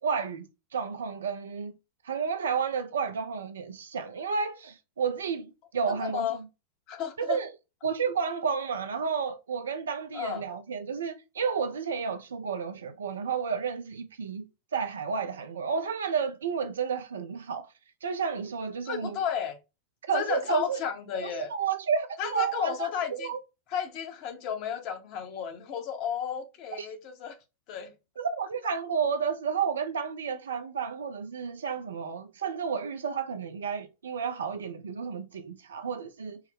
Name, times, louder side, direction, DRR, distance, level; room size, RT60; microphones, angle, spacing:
voice 1, 0.0-1.7 2.0-6.5 7.2-7.5 7.8-14.5 14.7-17.7 18.0-19.2 20.1-20.8 21.2-23.4 26.8-26.9 28.2-36.4, right 6 dB, 65° right, 0.5 m, -31 dB
voice 2, 5.9-6.4 6.9-7.4 10.1-10.4 18.8-19.6 20.1-21.5 22.2-23.3 23.7-27.4 27.7-27.9, left 8 dB, 40° left, 0.9 m, -33 dB
4.6 x 2.2 x 3.5 m
figure-of-eight pair, 90°, 0 cm